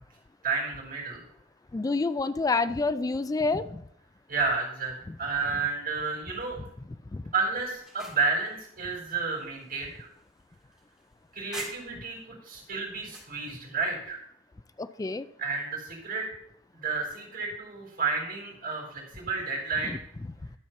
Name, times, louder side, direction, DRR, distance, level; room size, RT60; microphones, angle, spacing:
voice 1, 0.4-1.2 4.3-6.7 7.3-10.1 11.3-14.2 15.4-16.3 16.7-20.1, right 4 dB, 45° right, -2 dB, 3.7 m, -31 dB
voice 2, 1.7-3.8 5.1-5.2 7.1-7.2 14.8-15.3 19.8-20.0, left 3 dB, 15° left, 13 dB, 0.3 m, -28 dB
sound 1, 7.6-12.2 12.6-13.4, right 1 dB, 5° right, 2.2 m, -47 dB
12.0 x 4.4 x 5.7 m, 0.71 s
head